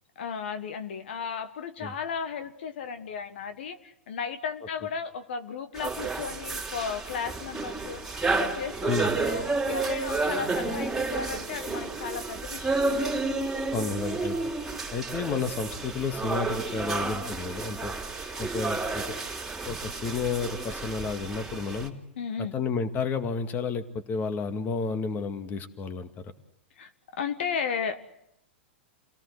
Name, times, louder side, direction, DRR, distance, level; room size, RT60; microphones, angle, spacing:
voice 1, 0.1-8.0 8.3-12.9 22.2-22.5 26.8-28.0, left 6 dB, 65° left, 9 dB, 1.5 m, -34 dB
sound 1, 5.7-21.9, right 3 dB, 5° right, 4.0 m, -31 dB
voice 2, 13.7-14.4 14.9-18.0 18.4-19.2 19.6-21.9 22.4-26.3, left 5 dB, 30° left, 8 dB, 2.1 m, -31 dB
28.5 x 18.0 x 8.1 m, 0.81 s
hypercardioid pair, 105°, 6 cm